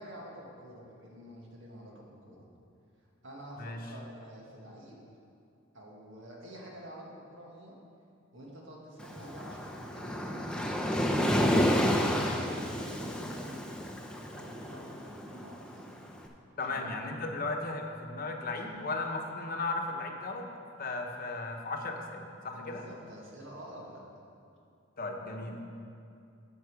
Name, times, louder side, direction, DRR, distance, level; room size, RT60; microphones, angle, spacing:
voice 1, 0.0-2.5 3.2-5.0 5.7-7.8 8.3-11.3 11.7-13.7 14.2-16.0 16.7-17.0 18.5-18.6 22.5-24.0, equal, 65° right, -3 dB, 1.8 m, -48 dB
Waves surf, 9.0-16.1, equal, 5° left, 0.7 m, -30 dB
voice 2, 16.6-20.5 20.8-22.8 25.0-25.6, left 3 dB, 45° left, 2 dB, 0.9 m, -36 dB
13.5 x 5.5 x 4.8 m, 2.5 s
head